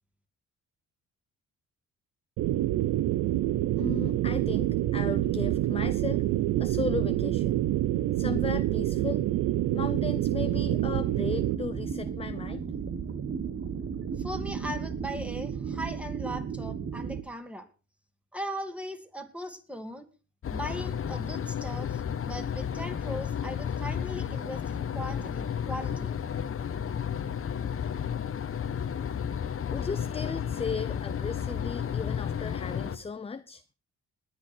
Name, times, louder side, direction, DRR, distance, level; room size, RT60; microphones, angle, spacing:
sound 1, 2.4-11.5, right 14 dB, 80° right, 0.7 m, -27 dB
voice 1, 3.8-6.2 6.6-7.7 8.2-9.3 9.7-12.6 29.7-33.6, left 5 dB, 20° left, 12 dB, 0.6 m, -36 dB
sound 2, 10.4-17.2, right 6 dB, 45° right, 1.4 m, -35 dB
voice 2, 14.2-17.7 18.3-20.1 20.5-26.1, equal, 5° right, 7 dB, 2.4 m, -39 dB
sound 3, 20.4-33.0, left 8 dB, 45° left, 1.2 m, -32 dB
20.0 x 8.8 x 4.5 m, 0.34 s
cardioid pair, 90°, 30 cm